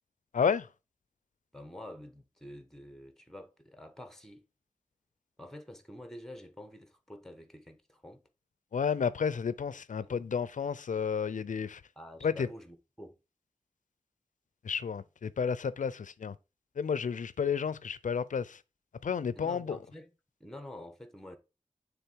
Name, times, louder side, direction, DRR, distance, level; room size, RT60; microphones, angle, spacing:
voice 1, 0.3-0.7 8.7-11.8 12.2-12.5 14.6-16.3 16.8-18.6 19.0-19.8, left 6 dB, 85° left, 0.4 m, -31 dB
voice 2, 1.5-4.4 5.4-8.2 10.0-10.1 12.0-13.2 19.3-20.1 20.4-21.4, left 1 dB, 5° left, 1.2 m, -48 dB
6.9 x 3.5 x 4.6 m
wide cardioid pair, 70°, 13 cm